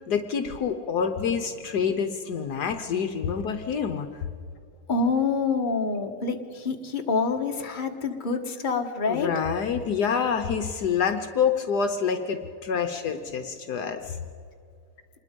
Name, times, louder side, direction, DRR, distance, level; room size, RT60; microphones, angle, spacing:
voice 1, 0.1-4.1 9.1-14.2, left 6 dB, 65° left, 6 dB, 1.4 m, -27 dB
voice 2, 4.9-9.3, left 4 dB, 30° left, 3 dB, 1.5 m, -26 dB
27.0 x 21.0 x 5.3 m, 2.4 s
omnidirectional pair, 1.9 m